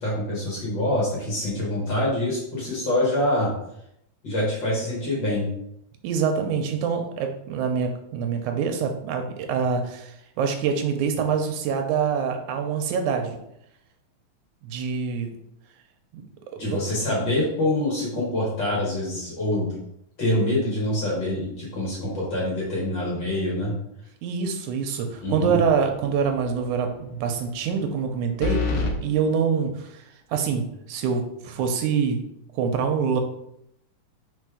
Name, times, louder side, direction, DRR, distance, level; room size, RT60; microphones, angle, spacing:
voice 1, 0.0-3.5 4.2-5.5 16.5-19.7 20.2-23.7 25.2-25.6, left 1 dB, 45° left, -5 dB, 2.1 m, -25 dB
voice 2, 6.0-13.4 14.6-15.3 16.1-16.2 16.6-16.8 24.2-30.0 30.3-32.2 32.5-33.2, right 6 dB, 80° right, 5 dB, 2.0 m, -25 dB
sound 1, 25.3-25.8 26.1-26.2 28.4-28.9, left 4 dB, 75° left, 2.3 m, -26 dB
4.5 x 4.3 x 4.8 m, 0.77 s
omnidirectional pair, 3.6 m